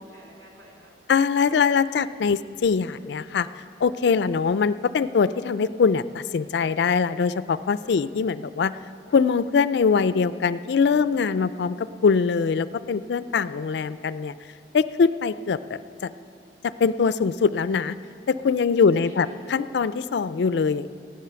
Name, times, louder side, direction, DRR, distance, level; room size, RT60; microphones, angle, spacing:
voice 1, 0.0-1.5 7.8-8.0 10.8-11.1 18.6-19.4, equal, 65° right, -2 dB, 3.6 m, -51 dB
voice 2, 1.1-3.5 3.8-8.7 9.1-14.3 14.7-16.1 16.6-18.0 18.3-20.9, left 5 dB, 65° left, 15 dB, 0.4 m, -22 dB
15.5 x 10.5 x 6.9 m, 2.4 s
head